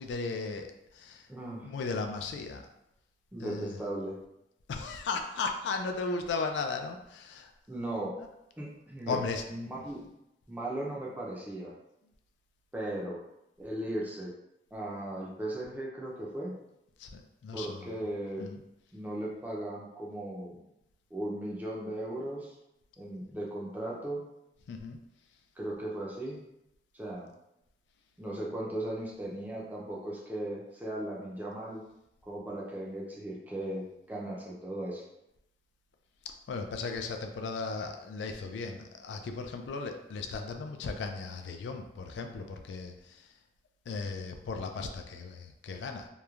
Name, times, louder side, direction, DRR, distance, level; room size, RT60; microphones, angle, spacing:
voice 1, 0.0-1.2 1.6-2.6 3.4-3.8 4.7-7.5 9.1-9.7 17.0-17.9 18.4-18.6 24.7-25.0 36.5-43.2 43.9-46.1, left 4 dB, 90° left, 5 dB, 0.3 m, -36 dB
voice 2, 1.3-1.7 3.3-4.2 7.7-8.2 8.6-9.2 9.5-10.1 10.5-11.7 12.7-13.2 13.6-14.3 14.7-16.5 17.5-18.5 18.9-20.6 21.1-22.5 23.0-24.2 25.6-26.4 26.9-27.3 28.2-31.8 32.3-35.0, right 1 dB, 10° right, -4 dB, 0.4 m, -37 dB
3.0 x 2.1 x 2.3 m, 0.86 s
head